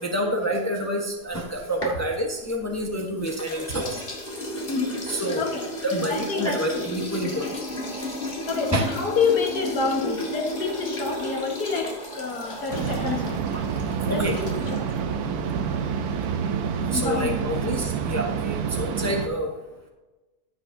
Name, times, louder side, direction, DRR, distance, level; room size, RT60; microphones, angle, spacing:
voice 1, 0.0-4.0 5.1-5.4 5.9-7.4 8.7-8.8 14.1-14.3 16.9-19.5, equal, 15° left, 1 dB, 0.8 m, -28 dB
sound 1, 1.2-2.8 3.2-15.0, left 1 dB, 35° left, 2.0 m, -34 dB
voice 2, 4.7-5.6 6.0-6.9 8.5-13.4 14.1-15.2 16.9-17.5, left 4 dB, 80° left, 1 dB, 2.0 m, -28 dB
sound 2, 7.1-16.9, right 1 dB, 55° right, 2.2 m, -44 dB
sound 3, 12.7-19.3, right 7 dB, 75° right, 1.2 m, -28 dB
15.0 x 6.4 x 2.7 m, 1.2 s
omnidirectional pair, 1.7 m